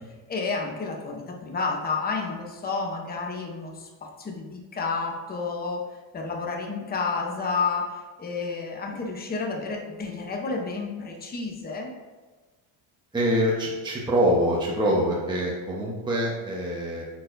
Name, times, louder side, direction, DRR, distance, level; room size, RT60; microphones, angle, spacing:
voice 1, 0.3-5.8 6.1-11.9, left 4 dB, 20° left, 1 dB, 0.8 m, -30 dB
voice 2, 13.1-17.0, equal, 10° right, -4 dB, 1.0 m, -24 dB
8.3 x 4.6 x 2.6 m, 1.3 s
cardioid pair, 135°, 49 cm